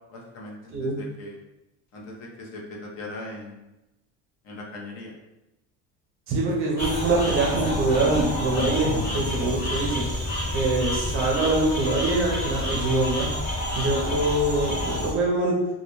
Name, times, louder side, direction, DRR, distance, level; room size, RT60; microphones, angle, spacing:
voice 1, 0.1-1.4 1.9-3.6 4.4-5.2, left 2 dB, 50° left, -1 dB, 0.6 m, -39 dB
voice 2, 6.3-10.0 10.5-13.3 13.8-15.6, right 2 dB, 40° right, -1 dB, 0.5 m, -24 dB
sound 1, 6.8-15.1, left 1 dB, 30° left, 1.0 m, -29 dB
2.2 x 2.1 x 3.0 m, 0.96 s
cardioid pair, 160°, 33 cm